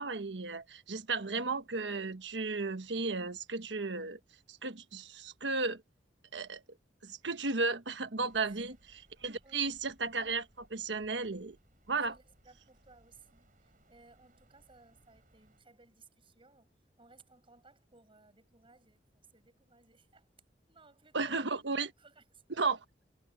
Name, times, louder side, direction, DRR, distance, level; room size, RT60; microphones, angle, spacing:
voice 1, 0.0-4.2 4.5-5.8 6.3-6.6 7.0-8.7 9.2-11.6 11.9-12.1 21.1-21.9 22.6-22.8, right 3 dB, 85° right, 1.3 m, -34 dB
sound 1, 8.2-15.6, right 1 dB, 50° right, 7.3 m, -67 dB
voice 2, 8.4-8.8 9.4-9.8 12.0-20.3 20.7-21.5 21.8-22.4, right 3 dB, 30° right, 6.5 m, -61 dB
head